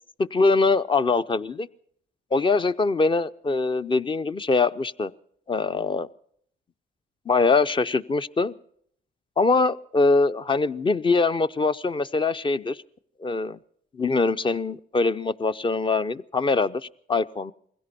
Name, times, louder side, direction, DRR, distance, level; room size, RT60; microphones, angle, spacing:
voice 1, 0.2-1.7 2.3-5.1 5.5-6.1 7.3-8.5 9.4-12.8 13.2-13.6 13.9-17.5, left 3 dB, 25° left, 14 dB, 0.6 m, -23 dB
21.0 x 16.5 x 4.2 m, 0.65 s
cardioid pair, 90°, 20 cm